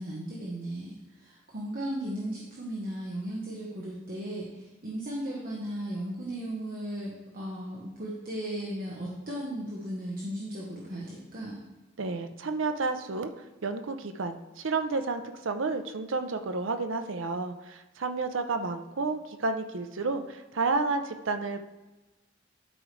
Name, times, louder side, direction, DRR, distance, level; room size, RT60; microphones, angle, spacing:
voice 1, 0.0-11.6, right 1 dB, 45° right, -4 dB, 1.2 m, -36 dB
voice 2, 12.0-13.3 13.6-21.6, right 3 dB, 80° right, 7 dB, 0.6 m, -31 dB
11.5 x 5.0 x 3.3 m, 1.1 s
head